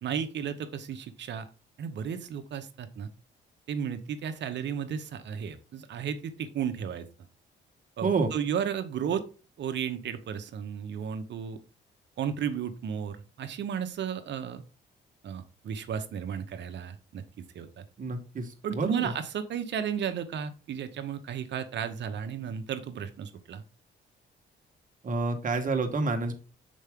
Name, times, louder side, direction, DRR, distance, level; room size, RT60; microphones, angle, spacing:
voice 1, 0.0-1.5 1.8-3.1 3.7-7.0 8.0-9.2 9.6-11.6 12.2-14.6 15.2-17.2 17.5-17.8 18.6-23.6, right 8 dB, 65° right, 9 dB, 0.9 m, -34 dB
voice 2, 8.0-8.3 18.0-19.1 25.0-26.3, right 3 dB, 40° right, 5 dB, 1.3 m, -28 dB
6.3 x 4.6 x 3.6 m, 0.36 s
cardioid pair, 90°, 20 cm